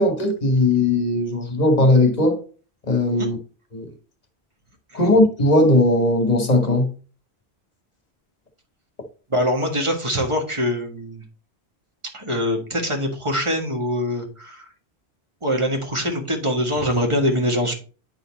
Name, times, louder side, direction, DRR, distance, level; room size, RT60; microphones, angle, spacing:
voice 1, 0.0-2.4 2.9-3.4 3.7-3.9 4.9-6.9, left 1 dB, 40° left, 1.2 m, -18 dB
voice 2, 9.3-11.2 12.1-14.7 15.4-17.7, equal, 30° right, 1.7 m, -23 dB
9.4 x 4.1 x 4.0 m
omnidirectional pair, 1.1 m